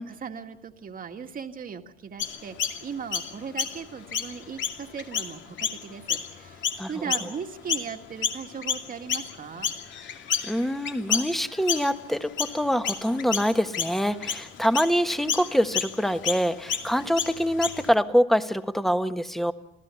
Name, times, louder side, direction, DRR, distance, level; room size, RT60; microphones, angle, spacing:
voice 1, 0.0-9.7, right 6 dB, 40° right, 5 dB, 1.9 m, -38 dB
Chirp tweet, 2.2-7.9 8.2-17.9, left 7 dB, 60° left, 2.7 m, -31 dB
voice 2, 10.4-19.5, equal, ahead, 8 dB, 1.6 m, -25 dB
27.5 x 15.5 x 8.4 m, 0.87 s
cardioid pair, 90°, 21 cm